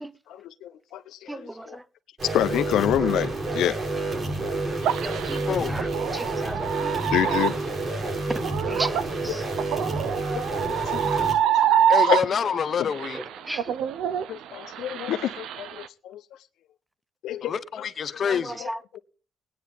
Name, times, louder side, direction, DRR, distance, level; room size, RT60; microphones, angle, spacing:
voice 1, 0.3-1.8 2.3-3.8 7.1-7.6 10.4-11.8 12.1-12.2 12.8-12.9 14.3-16.2 17.2-17.9 18.6-19.0, left 11 dB, 80° left, 0.7 m, -28 dB
voice 2, 1.3-1.8 5.0-5.9 6.1-7.0 8.7-9.2 13.5-13.6 18.3-18.8, right 1 dB, 10° right, 0.7 m, -35 dB
sound 1, 2.2-11.3, right 2 dB, 40° right, 6.7 m, -29 dB
sound 2, 4.8-12.6 12.9-15.9, right 9 dB, 85° right, 0.6 m, -26 dB
voice 3, 11.9-13.2 17.4-18.6, left 7 dB, 50° left, 0.9 m, -27 dB
21.5 x 9.6 x 3.5 m
cardioid pair, 90°, 0 cm